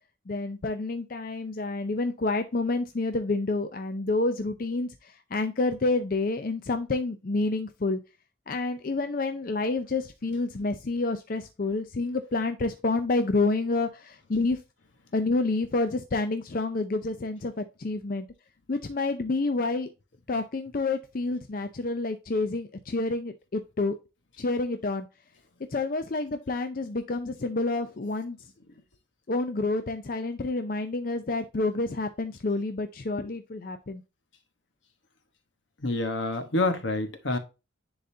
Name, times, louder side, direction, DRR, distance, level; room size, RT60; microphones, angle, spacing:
voice 1, 0.3-8.0 8.5-14.6 15.1-18.3 18.7-19.9 20.3-23.9 24.4-25.1 25.7-28.4 29.3-34.0, left 3 dB, 45° left, 0.5 m, -28 dB
voice 2, 35.8-37.4, left 2 dB, 75° left, 1.2 m, -27 dB
10.0 x 4.0 x 2.7 m
head